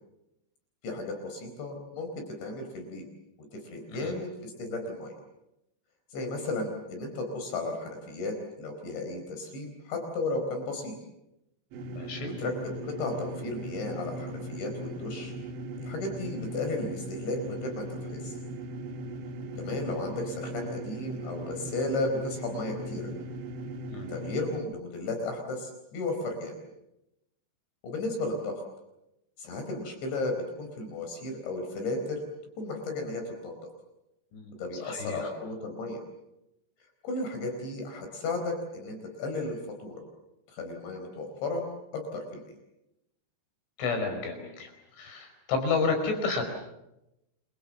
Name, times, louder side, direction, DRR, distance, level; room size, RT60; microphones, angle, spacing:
voice 1, 0.8-2.1 2.4-3.1 3.5-5.1 6.1-11.0 12.4-15.3 15.8-18.4 19.6-23.1 24.1-26.6 27.8-28.6 29.4-32.2 32.6-33.7 34.6-36.0 37.0-40.0 40.5-41.7 41.9-42.4, left 2 dB, 70° left, 4 dB, 6.7 m, -34 dB
sound 1, 11.7-24.6, right 1 dB, 75° right, 4.5 m, -38 dB
voice 2, 11.9-12.4 23.9-24.1 34.3-34.6 34.8-35.3 43.8-44.7 45.0-46.4, left 4 dB, 90° left, 6 dB, 7.5 m, -31 dB
29.5 x 26.0 x 7.2 m, 0.89 s
omnidirectional pair, 5.3 m